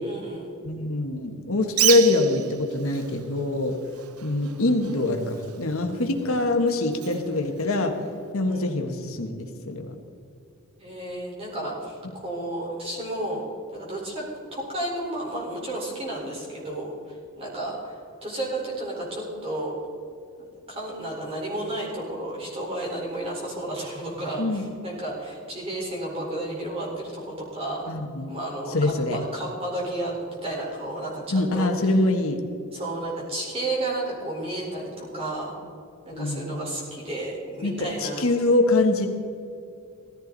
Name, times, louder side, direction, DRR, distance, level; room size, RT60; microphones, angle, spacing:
voice 1, 0.0-0.5 8.4-8.7 10.8-13.5 13.7-14.3 14.5-19.7 20.7-27.9 28.3-31.9 32.7-35.6 36.0-38.3, right 1 dB, 25° right, -4 dB, 4.4 m, -32 dB
voice 2, 0.6-3.7 4.2-7.9 8.3-9.9 24.4-24.6 27.9-28.3 28.7-29.2 31.3-32.4 36.1-36.6 37.6-39.1, left 2 dB, 70° left, 4 dB, 1.4 m, -24 dB
Bird, 1.7-8.3, right 11 dB, 85° right, 0.7 m, -32 dB
16.5 x 15.0 x 4.0 m, 2.6 s
head